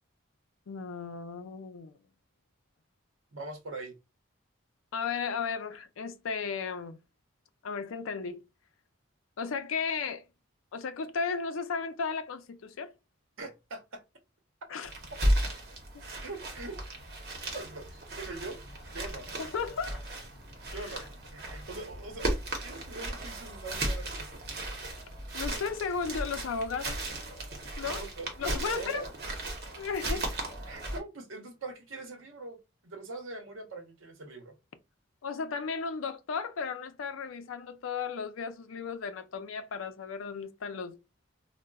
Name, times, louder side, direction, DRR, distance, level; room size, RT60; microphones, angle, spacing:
voice 1, 0.7-1.9 4.9-7.0 7.6-8.4 9.4-10.2 10.7-12.9 14.7-14.9 19.4-20.0 25.3-27.0 27.8-28.0 28.4-29.1 29.8-30.3 35.2-41.0, left 5 dB, 90° left, 0.4 m, -35 dB
voice 2, 3.3-3.9 13.4-14.0 16.2-16.8 17.5-18.6 18.9-19.3 20.7-21.0 21.3-22.3 22.6-24.7 28.0-29.1 30.0-30.2 30.7-34.6, right 2 dB, 85° right, 0.8 m, -42 dB
sound 1, 14.8-31.0, right 1 dB, 50° right, 0.8 m, -35 dB
3.8 x 2.1 x 2.2 m
head